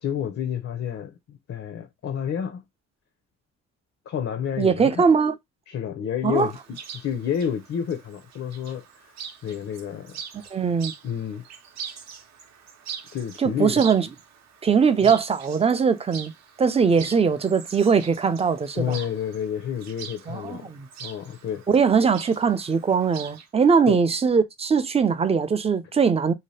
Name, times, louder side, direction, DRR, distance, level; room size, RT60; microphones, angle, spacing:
voice 1, 0.0-2.6 4.1-5.0 5.7-6.6 6.9-9.1 9.4-10.2 11.0-11.4 13.1-13.8 15.0-15.1 18.7-20.7 21.0-21.6 23.9-24.0, left 8 dB, 50° left, 0.6 m, -30 dB
voice 2, 4.6-5.3 6.2-6.5 10.5-10.9 13.4-14.1 14.6-16.3 16.6-19.0 20.3-20.9 21.7-26.3, right 6 dB, 20° right, 0.4 m, -21 dB
Chirp tweet, 6.3-23.5, right 7 dB, 65° right, 0.7 m, -43 dB
2.8 x 2.2 x 3.2 m
cardioid pair, 90°, 30 cm